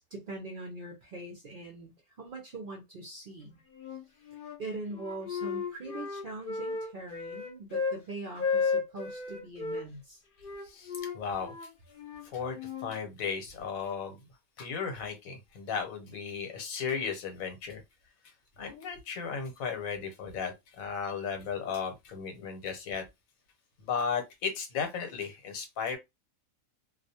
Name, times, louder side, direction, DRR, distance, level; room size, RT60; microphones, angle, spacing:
voice 1, 0.0-3.6 4.3-10.2, right 2 dB, 60° right, 0.6 m, -42 dB
Wind instrument woodwind instrument, 3.7-4.6 4.9-8.0 8.4-9.8 10.4-12.9, left 5 dB, 50° left, 0.7 m, -34 dB
voice 2, 10.6-11.5 12.3-14.2 14.6-17.8 18.6-23.0 23.8-26.0, left 6 dB, 75° left, 1.2 m, -35 dB
2.4 x 2.2 x 2.7 m
omnidirectional pair, 1.5 m